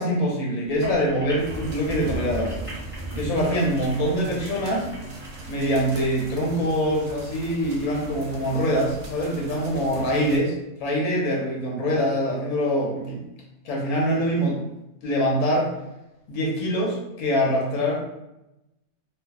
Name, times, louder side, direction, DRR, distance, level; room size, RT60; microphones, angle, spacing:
voice 1, 0.0-2.5 3.2-4.9 5.5-10.5 10.8-13.2 13.6-14.6 15.0-15.7 16.3-18.0, equal, 90° left, -2 dB, 1.1 m, -24 dB
sound 1, 0.6-6.1, right 1 dB, 20° left, 1.1 m, -36 dB
sound 2, 1.4-10.4, right 3 dB, 70° right, 0.9 m, -41 dB
2.5 x 2.3 x 2.2 m, 0.92 s
omnidirectional pair, 1.5 m